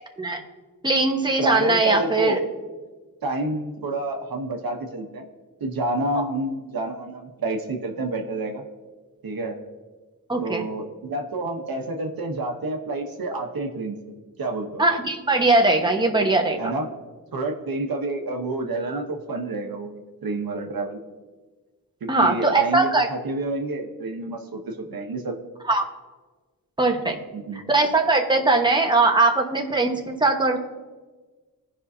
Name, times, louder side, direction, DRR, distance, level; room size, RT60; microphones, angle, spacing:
voice 1, 0.8-2.4 6.1-6.2 10.3-10.6 14.8-16.7 22.1-23.1 25.7-25.8 26.8-27.2 27.7-30.6, right 2 dB, 15° right, 2 dB, 1.2 m, -20 dB
voice 2, 1.4-2.4 3.2-5.2 5.6-8.6 9.2-9.5 10.4-13.9 14.4-14.8 16.6-16.9 17.3-21.0 22.0-25.4 27.3-27.7, right 2 dB, 75° right, 2 dB, 1.1 m, -29 dB
16.5 x 5.5 x 2.8 m, 1.3 s
cardioid pair, 60°, 35 cm